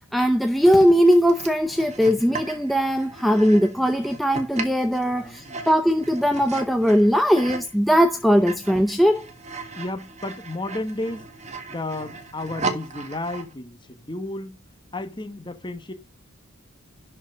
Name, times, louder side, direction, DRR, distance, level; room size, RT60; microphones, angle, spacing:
voice 1, 0.1-9.3, equal, ahead, 0.6 m, -19 dB
sound 1, 0.6-7.7 8.1-13.5, right 3 dB, 30° right, 1.6 m, -37 dB
voice 2, 5.1-5.7 9.7-11.3 11.7-14.6 14.9-15.9, left 2 dB, 20° left, 1.2 m, -33 dB
11.5 x 4.6 x 5.2 m
head